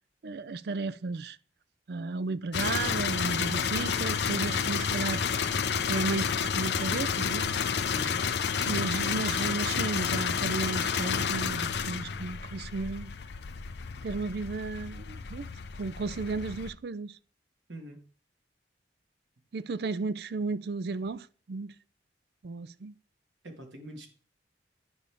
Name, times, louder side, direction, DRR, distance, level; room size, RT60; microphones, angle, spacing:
voice 1, 0.2-1.4 1.9-5.2 5.9-7.5 8.7-13.1 14.0-15.5 15.8-17.1 19.5-21.7 22.4-22.9, right 3 dB, 60° right, 0.4 m, -34 dB
sound 1, 2.5-16.7, left 6 dB, 65° left, 0.5 m, -30 dB
voice 2, 7.9-8.2 17.7-18.0 23.4-24.1, right 1 dB, 90° right, 1.8 m, -43 dB
10.5 x 5.3 x 3.5 m
head